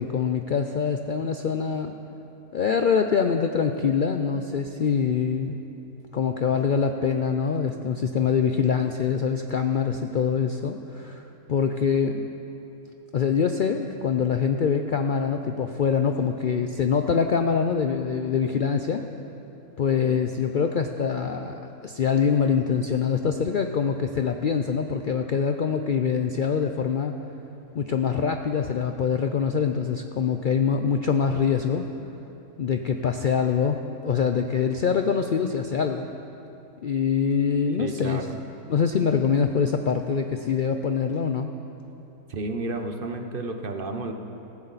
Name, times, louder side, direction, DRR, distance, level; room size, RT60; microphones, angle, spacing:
voice 1, 0.0-1.9 2.5-5.6 6.1-12.3 13.1-19.1 19.8-27.2 27.7-31.9 32.6-36.1 36.8-38.2 38.7-41.5, left 6 dB, 90° left, 6 dB, 0.4 m, -24 dB
voice 2, 37.8-38.4 42.3-44.1, right 2 dB, 45° right, 5 dB, 0.9 m, -31 dB
16.0 x 15.0 x 4.1 m, 2.9 s
omnidirectional pair, 1.5 m